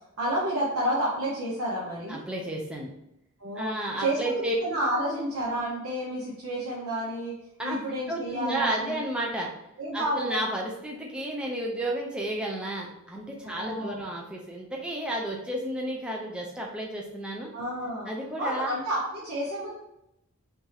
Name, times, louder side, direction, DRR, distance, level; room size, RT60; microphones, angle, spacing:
voice 1, 0.2-2.2 3.4-3.7 4.0-7.3 7.6-9.0 9.8-10.4 13.4-14.0 17.5-18.1 18.4-19.7, right 1 dB, 85° right, -6 dB, 0.8 m, -30 dB
voice 2, 2.1-2.9 3.6-4.5 7.6-7.8 8.1-9.5 9.9-17.5 18.1-18.7, right 1 dB, 5° right, -2 dB, 0.5 m, -32 dB
3.5 x 2.8 x 3.3 m, 0.83 s
head